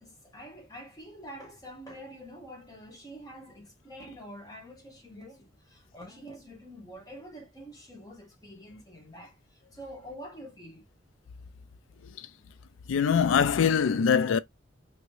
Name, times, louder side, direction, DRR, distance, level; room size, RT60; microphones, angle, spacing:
voice 1, 0.0-10.9, equal, 20° left, 1.1 m, -46 dB
voice 2, 12.9-14.4, left 7 dB, 85° left, 0.4 m, -23 dB
2.9 x 2.7 x 3.1 m
head